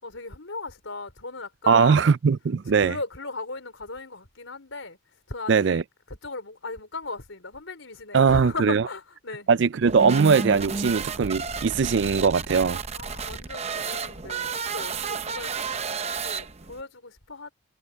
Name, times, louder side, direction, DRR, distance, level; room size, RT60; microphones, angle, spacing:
voice 1, 0.0-2.1 2.8-5.0 5.3-9.5 12.9-15.6 16.2-17.5, left 3 dB, 80° left, 4.2 m, -37 dB
voice 2, 1.7-3.0 5.5-5.8 8.1-8.8 9.5-12.8, right 5 dB, 65° right, 0.4 m, -20 dB
sound 1, 9.8-16.8, right 5 dB, 30° right, 0.8 m, -32 dB
head